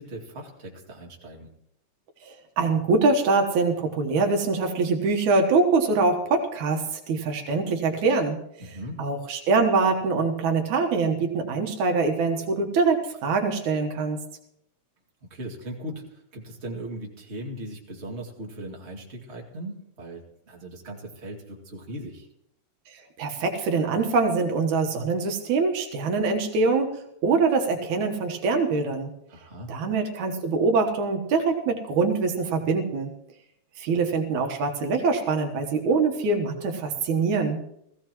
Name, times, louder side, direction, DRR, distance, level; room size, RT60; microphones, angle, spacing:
voice 1, 0.0-1.5 8.6-9.0 15.3-22.3 29.3-29.7, right 1 dB, 25° right, -2 dB, 2.3 m, -38 dB
voice 2, 2.3-8.4 9.0-14.2 23.2-26.9 27.2-29.1 29.7-33.1 33.8-37.6, right 4 dB, 80° right, 4 dB, 2.7 m, -24 dB
18.5 x 15.5 x 3.0 m, 0.74 s
omnidirectional pair, 3.4 m